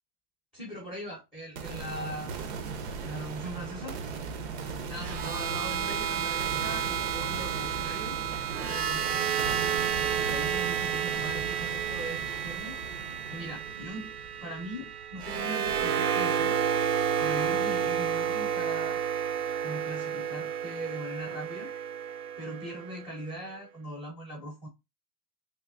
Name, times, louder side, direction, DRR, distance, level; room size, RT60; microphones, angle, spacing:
voice 1, 0.5-2.3 3.0-4.0 4.7-8.1 8.5-9.3 9.8-12.8 13.3-14.1 14.4-16.6 17.2-19.0 19.6-21.7 22.4-24.7, right 1 dB, ahead, 0.7 m, -40 dB
sound 1, 1.6-15.5, right 5 dB, 45° right, 0.7 m, -38 dB
sound 2, 5.0-23.1, right 8 dB, 75° right, 0.9 m, -31 dB
3.4 x 3.2 x 2.4 m
supercardioid pair, 170°, 46 cm